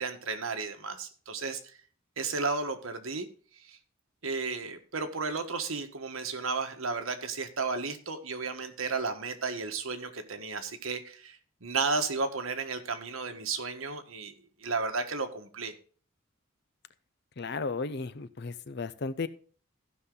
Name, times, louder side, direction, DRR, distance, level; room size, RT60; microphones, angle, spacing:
voice 1, 0.0-1.6 2.2-3.3 3.6-3.8 4.2-14.3 14.6-15.7, right 4 dB, 85° right, 6 dB, 1.5 m, -33 dB
voice 2, 17.4-19.3, left 4 dB, 55° left, 14 dB, 0.7 m, -34 dB
15.5 x 5.7 x 3.8 m, 0.42 s
head